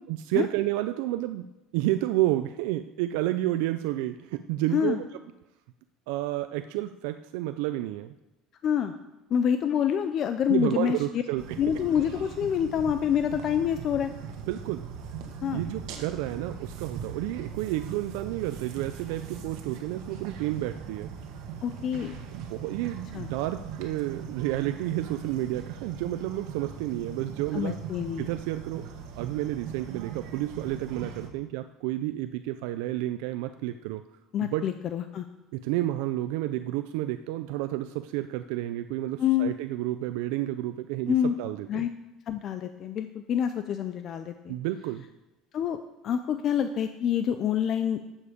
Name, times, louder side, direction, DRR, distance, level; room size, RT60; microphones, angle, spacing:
voice 1, 0.1-1.5 1.7-5.0 6.1-8.1 10.5-11.6 14.5-14.9 15.5-21.1 22.3-27.8 28.2-28.8 29.2-34.0 34.4-34.7 35.5-41.9 44.5-45.1, right 15 dB, 85° right, 9 dB, 0.4 m, -30 dB
voice 2, 8.6-8.9 9.3-11.0 11.6-14.1 15.4-15.6 21.6-22.2 23.1-23.3 27.5-28.3 34.3-35.3 39.2-39.5 41.1-41.3 41.7-41.9 42.3-44.6 45.5-45.8 46.0-48.0, left 9 dB, 40° left, 9 dB, 0.5 m, -27 dB
sound 1, 11.4-31.3, right 7 dB, 65° right, 1.5 m, -40 dB
11.0 x 7.3 x 5.1 m, 0.98 s
cardioid pair, 140°, 0 cm